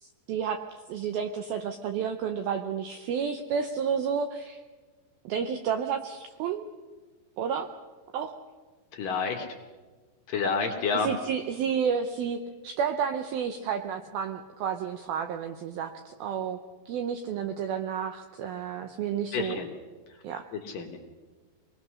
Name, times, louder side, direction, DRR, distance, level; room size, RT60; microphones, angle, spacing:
voice 1, 0.0-0.6 0.9-4.6 5.3-6.7 7.4-7.7 8.1-8.3 10.9-12.4 12.6-16.6 16.9-19.6 20.2-20.5, right 7 dB, 80° right, 7 dB, 2.2 m, -31 dB
voice 2, 9.0-9.5 10.3-11.1 19.3-19.7 20.5-21.0, left 5 dB, 60° left, 3 dB, 2.5 m, -29 dB
24.5 x 19.5 x 6.4 m, 1.4 s
omnidirectional pair, 5.3 m